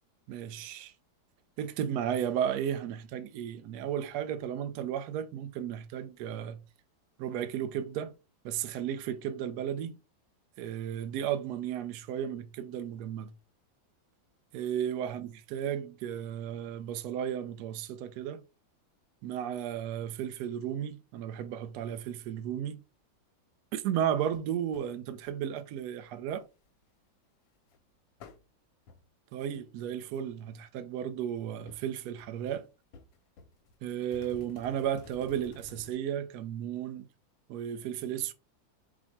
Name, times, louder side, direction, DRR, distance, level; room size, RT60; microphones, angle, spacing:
voice 1, 0.3-0.9 1.6-6.6 7.2-8.1 8.4-9.9 10.6-13.3 14.5-18.4 19.2-22.8 23.7-26.4 29.3-32.7 33.8-37.1 37.5-38.3, right 9 dB, 75° right, 0.9 m, -34 dB
sound 1, 24.3-24.4 24.7-24.9 25.2-25.6 26.1-26.7 27.7-27.8 28.2-28.4 28.9-29.0 29.5-29.8 30.1-30.2 30.5-30.8 31.7-31.8 32.2-32.6 32.9-35.9, left 3 dB, 80° left, 1.4 m, -53 dB
4.8 x 2.1 x 4.1 m
omnidirectional pair, 2.1 m